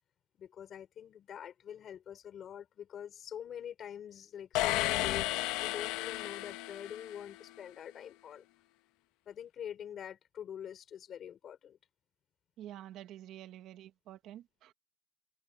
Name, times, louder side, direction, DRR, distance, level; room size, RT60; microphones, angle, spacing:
voice 1, 0.3-8.4 9.3-11.8, left 9 dB, 45° left, 4.2 m, -45 dB
sound 1, 4.5-7.4, left 17 dB, 90° left, 1.3 m, -33 dB
voice 2, 12.6-14.7, right 12 dB, 60° right, 1.4 m, -48 dB
cardioid pair, 140°, 0 cm